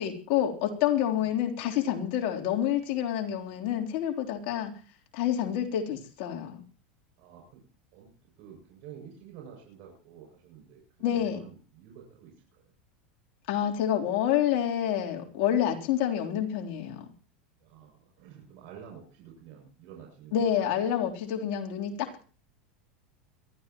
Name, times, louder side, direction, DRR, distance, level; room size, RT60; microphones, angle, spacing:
voice 1, 0.0-4.7 5.1-6.6 11.0-11.4 13.5-17.1 20.3-22.2, left 10 dB, 60° left, 1 dB, 3.5 m, -28 dB
voice 2, 7.2-7.6 7.9-12.7 17.6-20.7, right 8 dB, 60° right, -1 dB, 7.1 m, -50 dB
23.0 x 15.0 x 3.1 m, 0.38 s
supercardioid pair, 115°, 5 cm